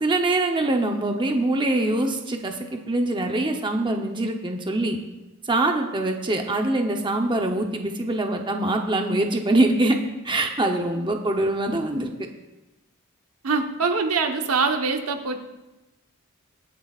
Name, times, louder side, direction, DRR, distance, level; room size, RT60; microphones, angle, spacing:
voice 1, 0.0-5.0 5.4-10.0 10.2-12.1, right 2 dB, 20° right, 3 dB, 0.8 m, -23 dB
voice 2, 13.4-15.4, right 4 dB, 80° right, 4 dB, 1.1 m, -24 dB
24.0 x 8.0 x 2.4 m, 1.0 s
head